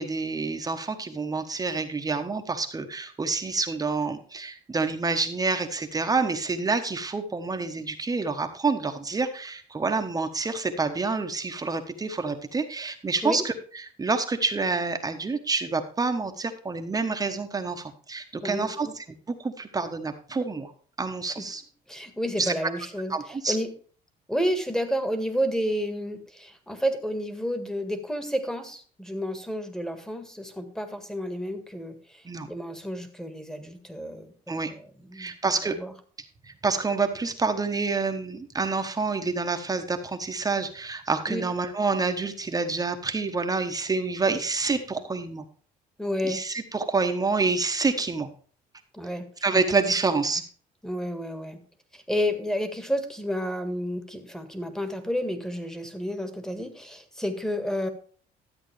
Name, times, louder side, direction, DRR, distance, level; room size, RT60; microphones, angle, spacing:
voice 1, 0.0-13.5 14.0-20.7 21.0-21.6 22.4-22.5 23.1-23.6 32.2-32.5 34.5-34.7 35.1-35.8 36.4-45.4 46.2-48.3 49.4-50.4, right 4 dB, 20° right, 6 dB, 1.2 m, -28 dB
voice 2, 18.4-18.9 21.4-21.5 21.9-23.7 24.3-35.3 35.6-35.9 41.3-41.4 46.0-46.4 48.9-49.3 49.5-49.6 50.1-50.2 50.8-51.6 51.9-57.9, equal, 5° left, 8 dB, 1.7 m, -31 dB
13.0 x 8.2 x 3.3 m, 0.43 s
cardioid pair, 110°, 17 cm